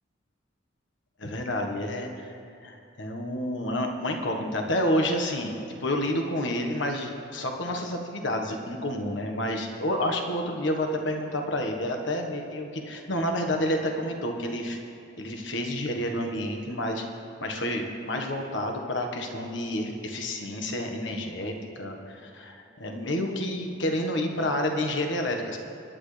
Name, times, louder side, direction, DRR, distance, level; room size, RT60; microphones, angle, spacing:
voice 1, 1.2-5.5 5.8-14.8 15.2-17.0 17.4-25.6, left 1 dB, 65° left, 3 dB, 1.5 m, -29 dB
22.5 x 10.0 x 3.4 m, 2.7 s
head